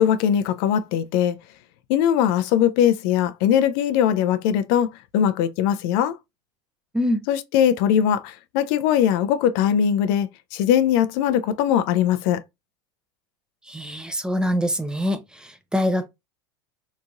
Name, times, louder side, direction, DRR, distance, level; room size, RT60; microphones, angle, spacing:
voice 1, 0.0-1.4 1.9-6.2 7.3-12.4, left 9 dB, 65° left, 0.4 m, -20 dB
voice 2, 13.7-16.1, equal, 5° right, 0.4 m, -24 dB
2.9 x 2.5 x 2.4 m
hypercardioid pair, 95°, 13 cm